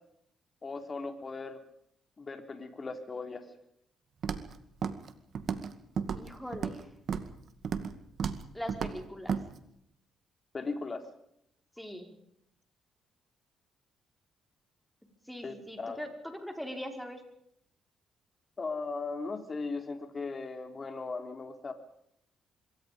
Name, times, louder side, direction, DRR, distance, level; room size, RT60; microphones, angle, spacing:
voice 1, 0.6-1.6 2.2-3.5 10.5-11.0 15.4-16.0 18.6-21.7, left 3 dB, 35° left, 6 dB, 3.7 m, -38 dB
Walk footsteps, 4.2-4.5 4.8-5.1 5.4-5.7 6.0-6.8 7.1-7.3 7.6-7.9 8.2-8.4 8.7-9.0 9.3-9.4, right 7 dB, 60° right, 2.1 m, -33 dB
voice 2, 6.1-6.9 8.5-9.4 11.8-12.1 15.3-17.2, equal, 5° left, 4 dB, 5.0 m, -41 dB
26.0 x 23.0 x 5.3 m, 0.74 s
cardioid pair, 90°, 0 cm